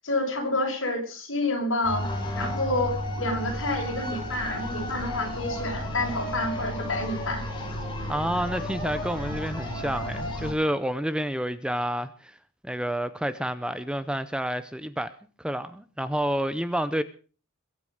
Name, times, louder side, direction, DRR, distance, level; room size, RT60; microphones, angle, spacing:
voice 1, 0.0-2.1 2.3-7.4, left 2 dB, 65° left, 6.7 m, -29 dB
sound 1, 1.8-10.5, left 1 dB, 25° left, 5.4 m, -33 dB
voice 2, 8.1-12.4 12.6-15.1 15.4-17.0, equal, 5° right, 0.7 m, -29 dB
22.0 x 9.0 x 6.5 m
head